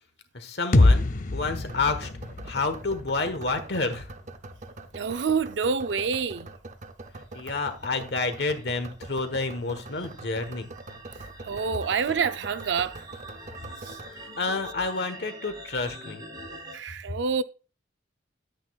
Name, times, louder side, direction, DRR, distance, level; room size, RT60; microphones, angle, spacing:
voice 1, 0.3-2.1 2.4-4.1 7.2-10.7 14.1-16.2, left 3 dB, 65° left, 1.3 m, -29 dB
sound 1, 0.7-4.6, left 2 dB, 45° left, 0.6 m, -25 dB
sound 2, 1.6-14.1, right 2 dB, 40° right, 0.6 m, -44 dB
voice 2, 4.9-6.5 11.4-12.9 13.8-14.0 16.7-17.4, right 5 dB, 85° right, 0.5 m, -27 dB
sound 3, 7.5-16.7, right 1 dB, 20° right, 4.6 m, -45 dB
9.7 x 9.0 x 2.4 m
head